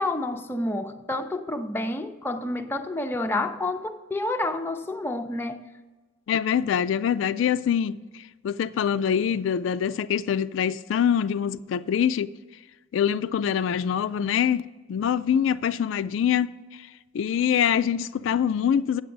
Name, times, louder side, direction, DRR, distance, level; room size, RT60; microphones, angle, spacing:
voice 1, 0.0-5.6, left 2 dB, 10° left, 0.5 m, -29 dB
voice 2, 6.3-8.0 8.4-12.3 12.9-14.6 14.9-16.5 17.1-19.0, left 8 dB, 80° left, 0.3 m, -24 dB
8.6 x 7.7 x 5.2 m
head